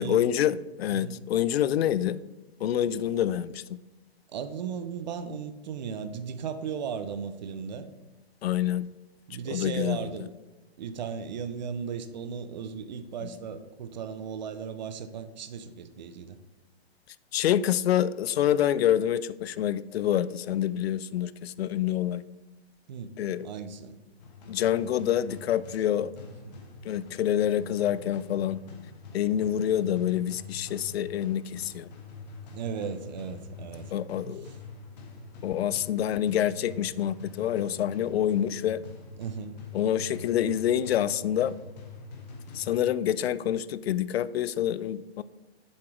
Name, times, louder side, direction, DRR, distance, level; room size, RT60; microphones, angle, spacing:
voice 1, 0.0-2.2 2.6-3.8 8.4-8.9 9.5-10.3 17.3-22.2 23.2-23.5 24.5-26.1 26.8-28.6 29.1-31.9 33.9-34.5 35.4-38.8 39.7-41.5 42.5-45.2, left 10 dB, 70° left, 0.4 m, -27 dB
voice 2, 4.3-7.9 9.3-10.3 10.8-16.4 22.9-23.2 23.4-24.0 26.4-26.6 32.5-33.9 34.2-34.4 39.2-39.6, right 6 dB, 45° right, 0.6 m, -36 dB
sound 1, 24.2-43.2, left 4 dB, 40° left, 1.2 m, -45 dB
7.2 x 5.0 x 4.6 m
hypercardioid pair, 170°, 32 cm